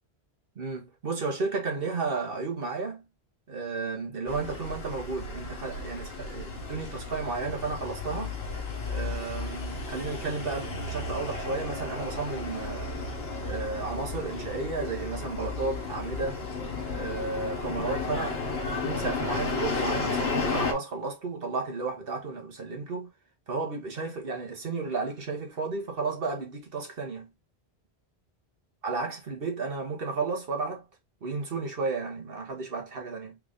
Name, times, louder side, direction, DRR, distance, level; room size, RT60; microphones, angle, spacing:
voice 1, 0.6-3.0 3.5-8.4 8.9-12.9 13.4-16.4 16.9-23.1 23.5-27.3 28.8-30.8 31.2-33.4, right 4 dB, 60° right, 1.3 m, -33 dB
sound 1, 4.3-20.7, left 3 dB, 70° left, 1.2 m, -33 dB
3.7 x 2.5 x 3.5 m
omnidirectional pair, 1.1 m